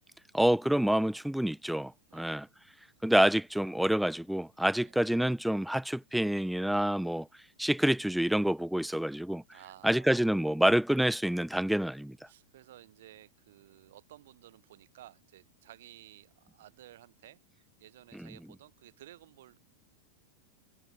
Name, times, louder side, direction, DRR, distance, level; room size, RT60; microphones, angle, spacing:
voice 1, 0.3-2.5 3.0-7.3 7.6-9.4 9.8-12.2 18.1-18.3, right 1 dB, ahead, 0.3 m, -27 dB
voice 2, 2.1-2.4 4.8-5.0 9.5-10.2 12.3-19.6, right 13 dB, 55° right, 2.5 m, -55 dB
figure-of-eight pair, 90°, 0 cm